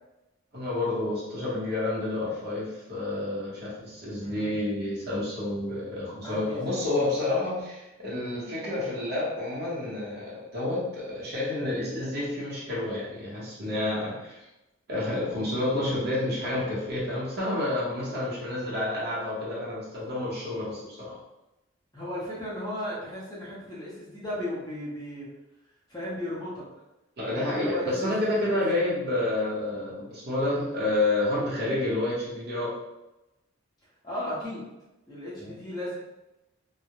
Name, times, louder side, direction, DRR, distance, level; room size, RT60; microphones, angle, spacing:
voice 1, 0.5-14.4 14.9-21.2 27.2-32.7 35.4-35.5, left 2 dB, 50° right, -7 dB, 0.9 m, -29 dB
voice 2, 4.2-4.5 6.2-7.1 21.9-25.3 25.9-26.6 27.3-28.8 30.5-30.7 34.0-34.7 35.1-36.0, left 1 dB, 20° left, -8 dB, 0.7 m, -35 dB
2.3 x 2.1 x 2.9 m, 0.96 s
head